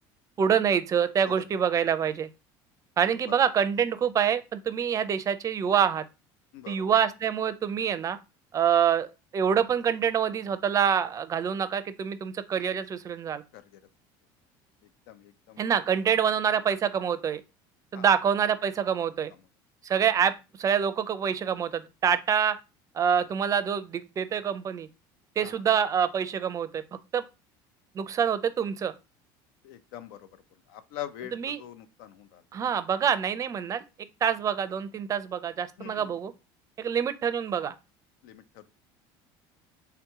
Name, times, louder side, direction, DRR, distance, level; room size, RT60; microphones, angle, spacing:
voice 1, 0.4-2.3 3.0-6.0 6.7-8.2 8.5-9.1 9.3-13.4 15.6-17.4 17.9-19.3 19.8-20.3 20.6-22.6 22.9-24.9 25.4-26.8 27.1-27.2 27.9-28.9 31.3-31.6 32.5-33.8 34.2-36.3 36.8-37.7, right 8 dB, 30° right, 0.4 m, -26 dB
voice 2, 6.5-6.9 13.5-13.8 15.1-15.6 17.9-18.1 25.4-25.6 29.6-30.3 30.7-32.4 35.8-36.1 38.2-38.7, left 12 dB, 85° left, 0.5 m, -43 dB
3.4 x 2.9 x 3.5 m
cardioid pair, 125°, 11 cm